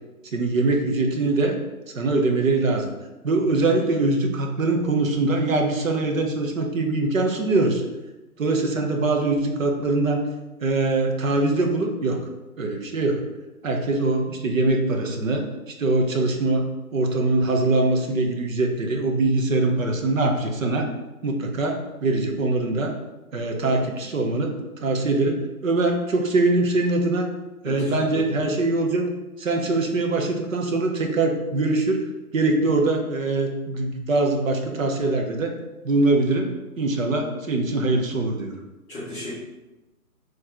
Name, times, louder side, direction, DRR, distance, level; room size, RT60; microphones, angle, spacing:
voice 1, 0.3-1.6 1.9-2.9 3.2-7.8 8.4-10.2 10.6-12.2 12.6-13.3 13.6-16.7 16.9-20.9 21.2-23.0 23.3-27.3 27.6-29.1 29.4-32.0 32.3-35.6 35.8-38.5, right 2 dB, 60° right, 2 dB, 1.0 m, -23 dB
voice 2, 27.6-28.4 38.9-39.3, left 1 dB, 5° left, -16 dB, 0.8 m, -35 dB
4.5 x 3.2 x 3.6 m, 1.1 s
hypercardioid pair, 165°, 44 cm